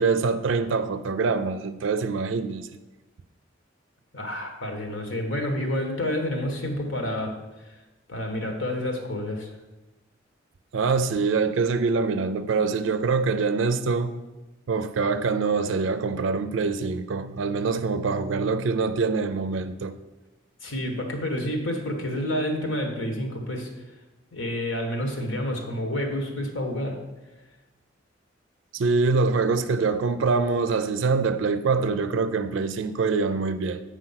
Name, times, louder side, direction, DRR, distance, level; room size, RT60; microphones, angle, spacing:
voice 1, 0.0-2.7 10.7-14.1 14.7-19.9 28.7-33.8, right 4 dB, 70° right, 0.4 m, -24 dB
voice 2, 4.1-7.3 7.6-7.7 8.1-9.5 20.6-23.7 24.3-27.0, left 1 dB, 75° left, 1.4 m, -29 dB
7.7 x 5.0 x 5.7 m
head